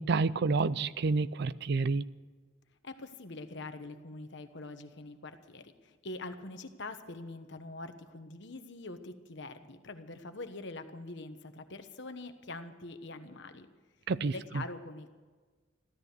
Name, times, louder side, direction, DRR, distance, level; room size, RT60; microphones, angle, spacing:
voice 1, 0.0-2.0 14.1-14.6, right 4 dB, 55° right, 0.4 m, -29 dB
voice 2, 2.8-13.7 14.2-15.1, left 2 dB, 60° left, 1.2 m, -44 dB
14.5 x 13.5 x 6.7 m
head